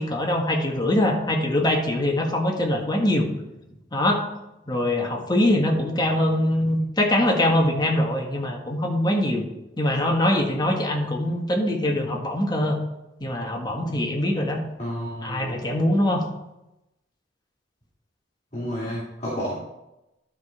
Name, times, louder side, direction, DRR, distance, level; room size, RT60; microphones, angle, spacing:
voice 1, 0.0-3.3 3.9-4.2 4.7-9.4 9.8-12.8 13.2-14.6 15.2-16.2, left 1 dB, 25° left, 1 dB, 1.4 m, -23 dB
voice 2, 14.8-15.6 18.5-19.5, equal, 40° left, -8 dB, 2.7 m, -31 dB
12.0 x 5.0 x 4.3 m, 0.92 s
head